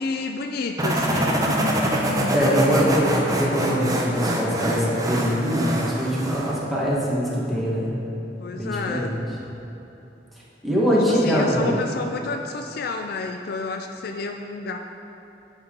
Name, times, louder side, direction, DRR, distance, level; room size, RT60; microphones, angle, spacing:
voice 1, 0.0-1.4 8.4-9.2 11.1-14.8, left 3 dB, 60° left, 5 dB, 0.4 m, -30 dB
sound 1, 0.8-6.6, right 1 dB, 20° right, 0.7 m, -24 dB
voice 2, 2.3-7.9 8.5-9.2 10.6-11.8, equal, ahead, -7 dB, 1.5 m, -23 dB
9.6 x 5.6 x 3.8 m, 2.9 s
head